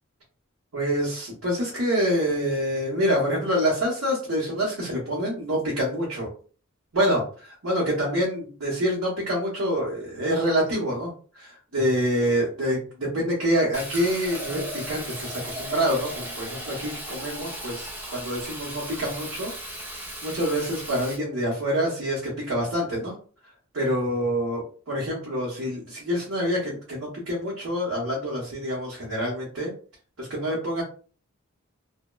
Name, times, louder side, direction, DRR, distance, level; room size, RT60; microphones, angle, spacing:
voice 1, 0.7-6.3 6.9-19.5 19.8-23.1 23.7-29.7 30.2-30.8, equal, 70° right, -5 dB, 0.9 m, -26 dB
Fill (with liquid), 13.7-21.2, equal, 10° right, 0.5 m, -36 dB
2.9 x 2.2 x 2.2 m, 0.40 s
head